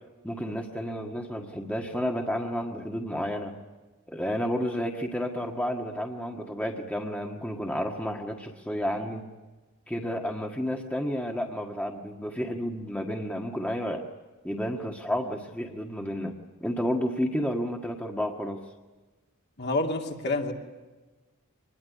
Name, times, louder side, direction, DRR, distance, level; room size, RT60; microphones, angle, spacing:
voice 1, 0.2-3.5 4.1-9.3 9.9-14.1 14.4-16.3 16.6-18.6, equal, 5° left, 1.6 m, -31 dB
voice 2, 19.6-20.5, left 2 dB, 50° left, 2.6 m, -28 dB
25.0 x 21.0 x 9.9 m
head